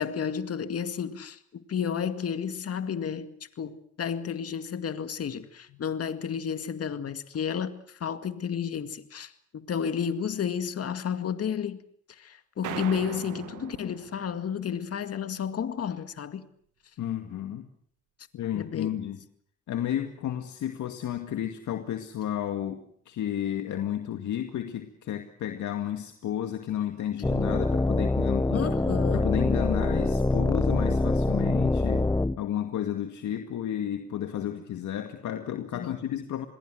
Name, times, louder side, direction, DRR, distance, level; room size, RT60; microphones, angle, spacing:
voice 1, 0.0-11.8 12.1-16.5 18.5-18.9 28.5-29.3 35.7-35.9, left 7 dB, 50° left, 2.2 m, -32 dB
sound 1, 12.6-15.0, right 11 dB, 85° right, 2.1 m, -40 dB
voice 2, 17.0-17.7 18.3-19.2 19.7-28.6 29.1-32.1 32.4-36.5, left 10 dB, 75° left, 2.1 m, -32 dB
sound 2, 27.2-32.4, left 2 dB, 10° left, 1.1 m, -25 dB
27.5 x 21.5 x 7.9 m
cardioid pair, 90°, 30 cm